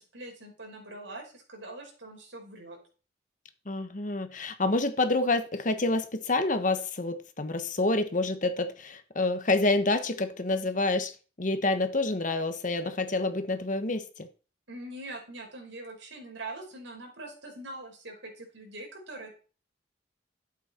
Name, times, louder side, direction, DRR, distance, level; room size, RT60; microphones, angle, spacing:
voice 1, 0.0-2.8 14.7-19.3, right 2 dB, 75° right, 5.1 m, -43 dB
voice 2, 3.6-11.1 11.4-14.3, left 2 dB, 40° left, 1.3 m, -28 dB
12.5 x 8.6 x 4.4 m
head